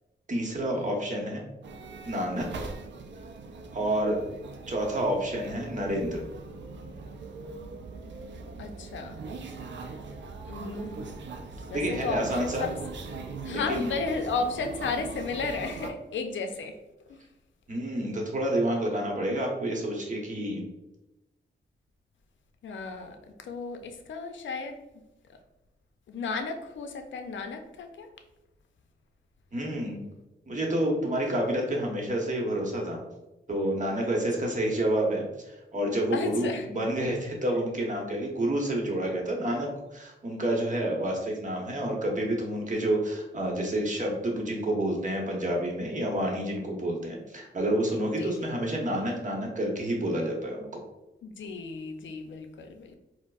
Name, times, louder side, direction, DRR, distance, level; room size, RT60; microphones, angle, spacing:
voice 1, 0.3-1.4 2.0-2.5 3.7-4.2 4.7-6.2 11.7-12.7 13.5-13.9 17.7-20.6 29.5-30.0 30.5-33.0 33.5-50.8, right 1 dB, 40° right, 0 dB, 0.9 m, -29 dB
sound 1, 1.6-15.9, right 3 dB, 70° right, 0.4 m, -41 dB
voice 2, 8.6-9.2 10.4-11.1 11.7-12.7 13.4-16.8 17.1-17.2 22.6-24.8 26.1-28.1 36.1-36.7 38.9-39.1 48.1-48.3 51.2-53.0, left 4 dB, 75° left, 6 dB, 0.4 m, -34 dB
4.4 x 2.0 x 2.3 m, 0.97 s
cardioid pair, 75°, 20 cm